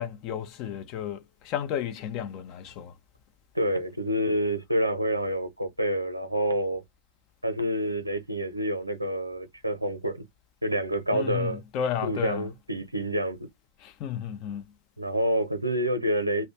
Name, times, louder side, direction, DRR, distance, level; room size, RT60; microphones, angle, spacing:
voice 1, 0.0-2.9 11.1-12.5 13.8-14.6, left 9 dB, 40° left, 0.5 m, -33 dB
voice 2, 3.5-6.8 7.4-10.2 10.6-11.6 12.0-13.4 15.0-16.5, equal, 85° right, 0.6 m, -28 dB
2.2 x 2.1 x 2.7 m
figure-of-eight pair, 90°, 0 cm